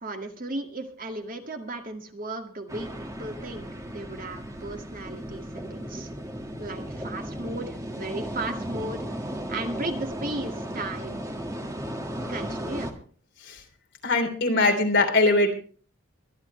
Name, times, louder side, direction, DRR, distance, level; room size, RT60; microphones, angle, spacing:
voice 1, 0.0-6.1 6.6-9.0 9.5-11.2 12.3-13.0, right 2 dB, 40° right, 4 dB, 2.0 m, -35 dB
sound 1, 2.7-12.9, equal, 15° right, 1.6 m, -35 dB
voice 2, 14.0-15.5, left 2 dB, 55° left, 3 dB, 3.3 m, -21 dB
23.5 x 11.5 x 3.2 m, 0.43 s
head